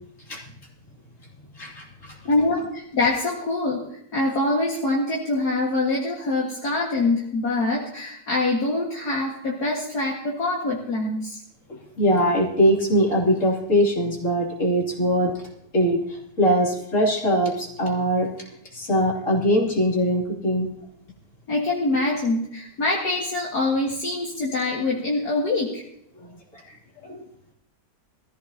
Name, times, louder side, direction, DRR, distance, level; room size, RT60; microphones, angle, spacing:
voice 1, 1.5-2.2 12.0-15.4 15.7-18.3 18.7-20.7 26.2-26.3 26.5-26.8 27.0-27.2, equal, 45° left, -3 dB, 3.4 m, -22 dB
voice 2, 2.3-11.4 21.5-25.8, left 2 dB, 65° left, -3 dB, 2.4 m, -24 dB
21.0 x 14.5 x 2.9 m, 0.74 s
omnidirectional pair, 1.9 m